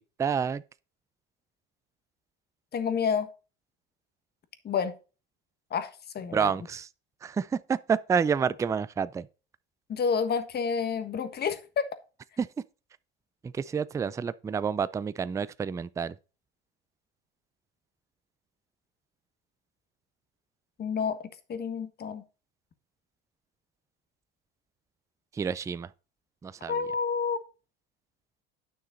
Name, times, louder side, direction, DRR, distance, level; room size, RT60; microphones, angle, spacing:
voice 1, 0.2-0.6 6.3-6.9 7.2-9.3 12.4-12.5 13.4-16.1 25.3-25.9 26.4-26.8, right 6 dB, 10° right, 0.3 m, -29 dB
voice 2, 2.7-3.3 4.6-5.0 5.7-6.5 9.9-11.9 20.8-21.2 21.5-22.2 26.7-27.4, left 6 dB, 35° left, 1.4 m, -29 dB
9.4 x 6.3 x 4.0 m
supercardioid pair, 100°, 29 cm